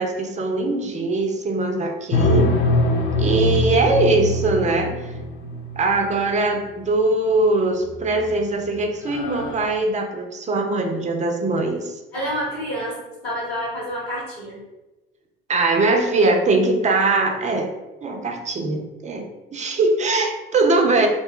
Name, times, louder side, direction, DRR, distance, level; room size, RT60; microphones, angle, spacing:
voice 1, 0.0-2.5 3.2-5.1 5.8-12.0 15.5-17.7 18.0-21.1, right 2 dB, 25° right, 3 dB, 0.6 m, -21 dB
sound 1, 2.1-6.0 7.8-8.3 8.7-8.8 9.1-9.7, left 1 dB, 45° left, 0.5 m, -22 dB
voice 2, 12.1-14.6, equal, 90° left, -8 dB, 1.2 m, -28 dB
2.6 x 2.2 x 3.6 m, 1.1 s
figure-of-eight pair, 55°, 30 cm